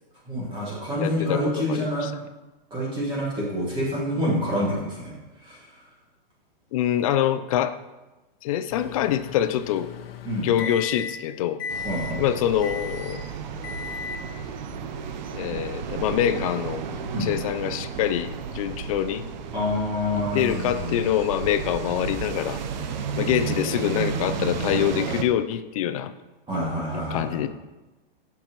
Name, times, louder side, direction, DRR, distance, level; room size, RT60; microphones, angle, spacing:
voice 1, 0.3-2.1 2.7-5.1 5.4-5.7 10.2-10.5 11.8-12.2 15.5-15.6 17.1-17.3 19.5-21.0 23.1-23.9 26.5-27.4, equal, 15° right, -6 dB, 2.3 m, -28 dB
voice 2, 1.0-2.1 6.7-7.8 8.4-9.9 10.4-11.6 12.2-13.2 15.3-16.8 17.2-19.3 20.1-22.6 23.1-26.1 27.1-27.5, left 10 dB, 35° left, 12 dB, 0.5 m, -25 dB
Microwave oven, 8.7-11.3 11.6-12.2 12.6-13.2 13.6-14.3, left 6 dB, 80° left, 0.8 m, -35 dB
sound 1, 11.7-25.2, right 6 dB, 50° right, 0.8 m, -33 dB
14.0 x 5.9 x 3.1 m, 1.1 s
hypercardioid pair, 150°, 29 cm